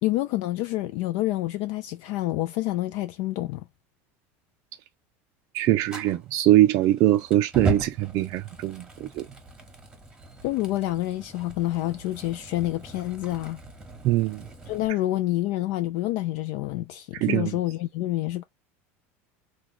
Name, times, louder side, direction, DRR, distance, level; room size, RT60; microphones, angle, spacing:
voice 1, 0.0-3.6 10.4-13.6 14.7-18.4, left 16 dB, 60° left, 0.4 m, -28 dB
voice 2, 5.5-9.3 14.0-14.4 17.1-17.5, right 14 dB, 50° right, 0.3 m, -22 dB
Fire, 5.9-14.9, right 1 dB, 10° right, 1.0 m, -38 dB
3.1 x 2.2 x 3.7 m
supercardioid pair, 125°, 7 cm